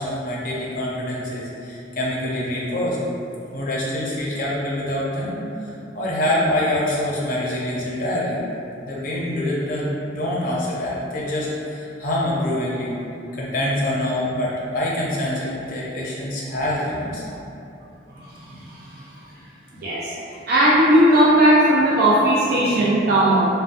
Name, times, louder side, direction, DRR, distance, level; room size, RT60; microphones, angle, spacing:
voice 1, 0.0-3.0 3.5-8.4 8.9-12.9 13.3-17.2, left 1 dB, 45° left, -5 dB, 0.6 m, -25 dB
voice 2, 19.8-20.1 20.5-23.5, right 1 dB, 55° right, -7 dB, 0.5 m, -16 dB
4.0 x 2.1 x 2.5 m, 2.8 s
head